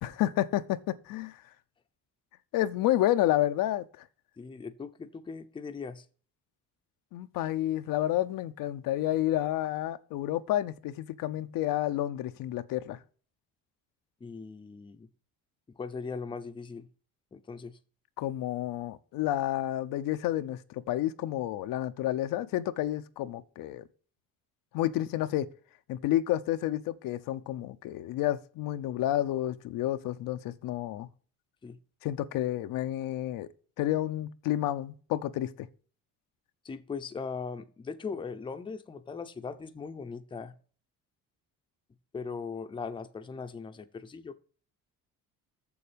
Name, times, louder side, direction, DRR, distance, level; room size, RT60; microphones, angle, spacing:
voice 1, 0.0-1.3 2.5-3.8 7.1-13.0 18.2-23.8 24.7-25.5 25.9-31.1 32.0-33.5 33.8-35.7, left 13 dB, 75° left, 0.7 m, -30 dB
voice 2, 4.4-6.1 14.2-15.1 15.8-16.9 17.3-17.8 31.6-31.8 36.6-40.5 42.1-44.4, left 5 dB, 15° left, 0.6 m, -39 dB
7.2 x 7.0 x 5.0 m
cardioid pair, 150°, 34 cm